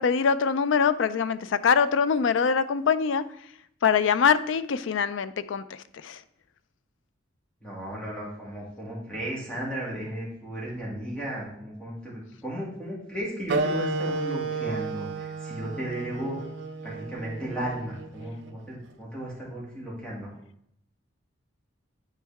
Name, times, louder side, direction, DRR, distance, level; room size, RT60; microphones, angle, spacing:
voice 1, 0.0-3.2 3.8-5.6 6.0-6.2, left 6 dB, 70° left, 14 dB, 0.4 m, -23 dB
voice 2, 7.6-16.4 16.8-20.3, right 1 dB, 5° left, -5 dB, 2.2 m, -35 dB
Wind instrument woodwind instrument, 13.5-18.6, right 3 dB, 70° right, 0.7 m, -32 dB
9.1 x 4.5 x 3.4 m, 0.73 s
head